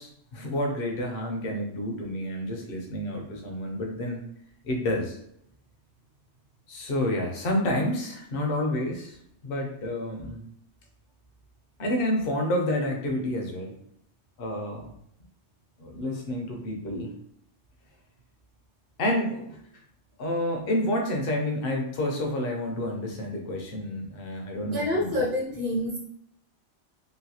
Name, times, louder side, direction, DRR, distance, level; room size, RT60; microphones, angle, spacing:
voice 1, 0.0-4.2 4.6-5.2 6.7-9.2 9.4-10.4 11.8-13.7 14.4-14.9 15.8-17.1 19.0-19.6 20.2-25.2, left 1 dB, 55° left, 1 dB, 0.9 m, -29 dB
voice 2, 24.6-26.0, left 1 dB, 55° right, -3 dB, 0.7 m, -27 dB
3.1 x 2.6 x 2.8 m, 0.71 s
omnidirectional pair, 1.2 m